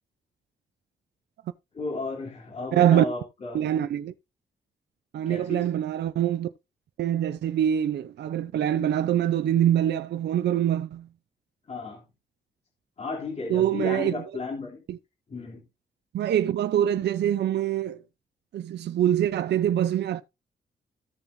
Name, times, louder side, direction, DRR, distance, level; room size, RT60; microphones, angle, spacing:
voice 1, 1.7-3.6 5.3-5.7 11.7-12.0 13.0-14.8 15.3-15.6, left 3 dB, 35° left, 3.0 m, -34 dB
voice 2, 2.7-3.0 3.5-4.1 5.1-6.5 7.0-11.1 13.5-14.2 16.1-18.0 18.5-20.2, right 10 dB, 75° right, 0.6 m, -24 dB
14.5 x 7.1 x 2.6 m
wide cardioid pair, 175°, 18 cm